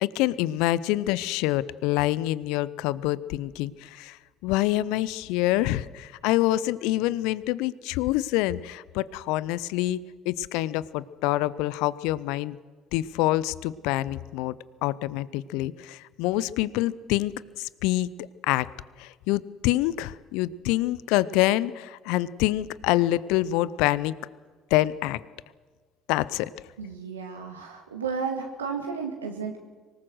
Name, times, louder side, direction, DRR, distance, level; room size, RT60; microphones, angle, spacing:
voice 1, 0.0-4.2 4.4-10.0 10.3-12.6 12.9-14.5 14.8-18.1 18.5-18.7 19.0-24.1 24.7-25.2 26.1-26.5, left 16 dB, 70° left, 20 dB, 0.6 m, -26 dB
voice 2, 26.8-29.6, right 5 dB, 90° right, 1 dB, 2.0 m, -33 dB
25.0 x 19.5 x 6.4 m, 1.4 s
hypercardioid pair, 55°, 0 cm